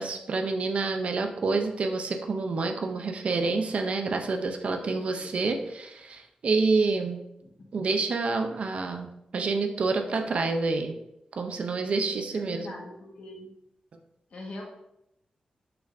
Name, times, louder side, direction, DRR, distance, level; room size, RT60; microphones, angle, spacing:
voice 1, 0.0-7.2 7.7-11.0 11.4-12.7, right 3 dB, 55° right, 5 dB, 0.6 m, -28 dB
voice 2, 4.8-5.5 7.4-7.7 12.3-13.5 14.3-14.6, left 2 dB, 60° left, -1 dB, 1.5 m, -43 dB
6.6 x 5.5 x 2.6 m, 0.84 s
wide cardioid pair, 150°, 2 cm